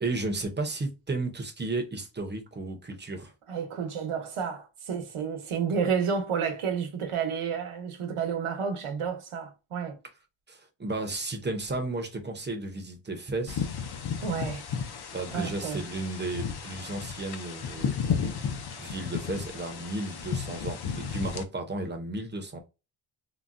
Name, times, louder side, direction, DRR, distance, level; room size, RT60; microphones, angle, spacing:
voice 1, 0.0-3.3 10.5-13.7 15.1-18.4 18.8-22.6, right 2 dB, 20° right, 0.6 m, -34 dB
voice 2, 3.5-10.0 14.2-14.6 15.3-15.8, right 6 dB, 90° right, 0.9 m, -30 dB
sound 1, 13.5-21.4, left 7 dB, 55° left, 0.5 m, -34 dB
3.9 x 2.0 x 2.4 m
wide cardioid pair, 155°, 49 cm